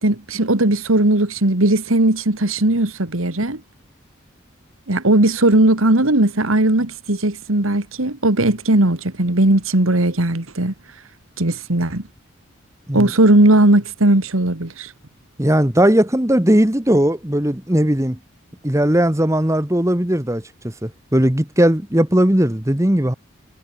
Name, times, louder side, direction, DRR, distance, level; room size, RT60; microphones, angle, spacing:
voice 1, 0.0-3.6 4.9-10.7 11.4-12.0 12.9-14.9, right 1 dB, 90° right, 2.4 m, -17 dB
voice 2, 15.4-18.2 18.6-23.1, right 1 dB, 15° right, 1.3 m, -18 dB
head